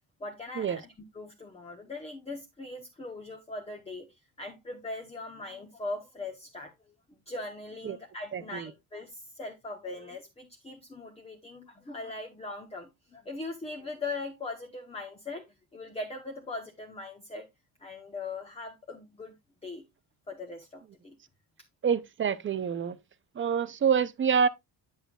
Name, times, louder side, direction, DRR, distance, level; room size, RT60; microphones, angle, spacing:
voice 1, 0.2-6.9 7.3-17.5 17.8-19.3 19.6-19.8 20.3-21.2, left 2 dB, 15° left, 0.9 m, -40 dB
voice 2, 8.3-8.7 21.8-23.0 23.4-24.5, right 7 dB, 30° right, 0.4 m, -27 dB
9.4 x 8.0 x 2.3 m
cardioid pair, 180°, 44 cm